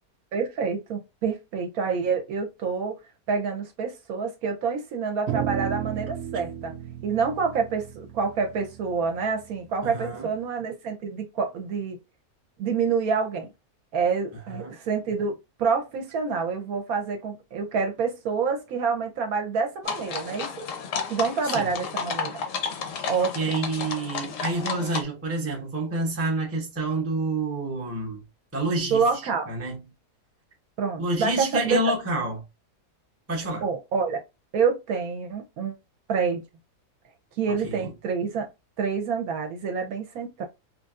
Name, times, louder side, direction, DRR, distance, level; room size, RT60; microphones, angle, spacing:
voice 1, 0.3-3.0 3.3-6.8 7.0-12.0 12.6-13.5 13.9-20.7 21.1-22.4 23.0-23.7 28.9-29.5 30.8-32.0 33.6-34.2 34.5-35.8 36.1-36.4 37.4-38.5 38.8-40.4, right 5 dB, 70° right, 1.0 m, -27 dB
sound 1, 5.3-9.8, right 10 dB, 90° right, 0.5 m, -34 dB
voice 2, 9.8-10.3 14.5-14.8 21.4-21.7 22.9-28.2 28.5-29.0 29.5-29.8 31.0-32.4 33.3-33.6 37.6-37.9, right 2 dB, 15° right, 0.5 m, -28 dB
sound 2, 19.8-25.0, left 6 dB, 65° left, 0.9 m, -32 dB
3.3 x 2.6 x 2.3 m
omnidirectional pair, 1.7 m